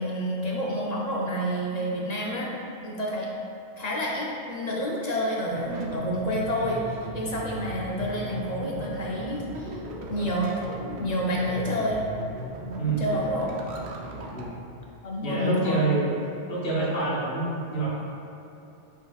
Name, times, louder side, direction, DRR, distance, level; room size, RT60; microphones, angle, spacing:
voice 1, 0.0-2.5 2.8-3.3 3.8-9.8 10.1-10.5 11.0-12.0 13.0-13.6 15.0-15.9, equal, 50° left, -3 dB, 0.5 m, -29 dB
sound 1, 5.5-14.5, right 2 dB, 75° right, 0.9 m, -37 dB
voice 2, 12.8-13.1 14.3-14.5 15.2-16.1 16.5-17.9, right 3 dB, 70° left, -7 dB, 1.1 m, -27 dB
5.7 x 3.7 x 2.3 m, 2.9 s
omnidirectional pair, 1.1 m